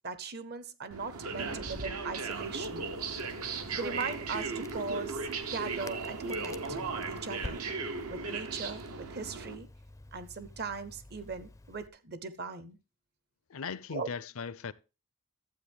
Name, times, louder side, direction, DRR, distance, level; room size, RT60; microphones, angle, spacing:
voice 1, 0.0-3.0 3.4-5.2 5.5-7.7 8.1-9.7 10.1-12.8 13.9-14.1, right 4 dB, 45° right, 0.8 m, -39 dB
sound 1, 0.9-9.6, right 4 dB, 80° right, 1.1 m, -37 dB
Crackle, 2.3-11.9, left 1 dB, 15° left, 0.4 m, -49 dB
voice 2, 13.5-14.7, left 5 dB, 65° left, 0.6 m, -38 dB
12.5 x 7.8 x 3.5 m
head